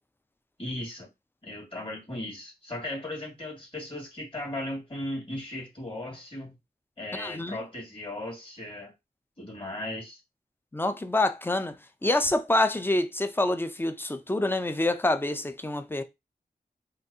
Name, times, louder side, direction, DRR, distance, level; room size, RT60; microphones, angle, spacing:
voice 1, 0.6-1.1 1.4-6.6 7.0-8.9 9.4-10.2, left 1 dB, 35° left, 2.1 m, -37 dB
voice 2, 7.1-7.6 10.7-11.8 12.0-16.0, left 2 dB, 15° left, 0.5 m, -26 dB
3.8 x 2.6 x 2.7 m
wide cardioid pair, 55°, 16 cm